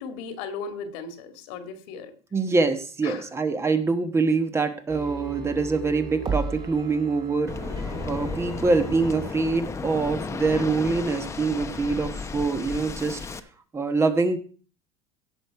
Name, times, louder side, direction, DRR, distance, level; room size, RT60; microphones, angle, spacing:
voice 1, 0.0-2.1 3.0-3.3 7.8-8.2 11.8-12.0, left 5 dB, 80° left, 7 dB, 2.1 m, -37 dB
voice 2, 2.3-13.2 13.7-14.4, right 4 dB, 20° right, 8 dB, 1.2 m, -25 dB
sound 1, 4.9-9.3 9.7-9.8, right 4 dB, 35° right, 2.4 m, -35 dB
Waves surf, 7.5-13.4, left 5 dB, 20° left, 0.8 m, -34 dB
16.5 x 6.5 x 4.7 m, 0.40 s
cardioid pair, 135°, 14 cm